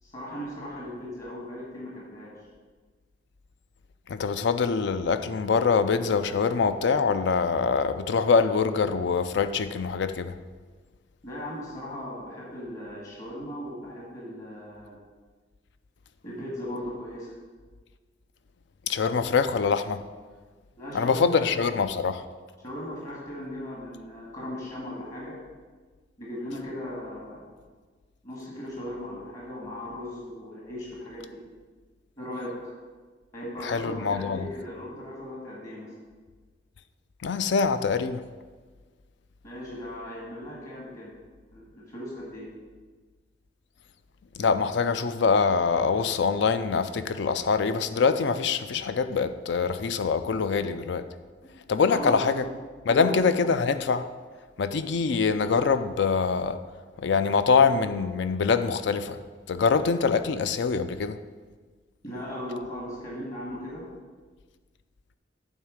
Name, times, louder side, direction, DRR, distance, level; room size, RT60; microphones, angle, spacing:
voice 1, 0.0-2.3 11.2-15.0 16.2-17.3 20.8-21.5 22.6-25.4 26.2-27.5 28.2-31.4 32.2-32.7 33.3-35.9 39.4-41.1 41.5-42.5 51.4-52.4 52.9-53.1 62.0-63.8, left 1 dB, 40° left, 1.8 m, -37 dB
voice 2, 4.1-10.4 18.9-20.0 20.9-22.2 33.6-34.4 37.2-38.2 44.4-51.1 51.7-52.5 52.9-54.1 54.6-56.6 57.0-59.2 59.5-61.2, left 5 dB, 65° left, 0.4 m, -24 dB
9.0 x 3.7 x 6.3 m
head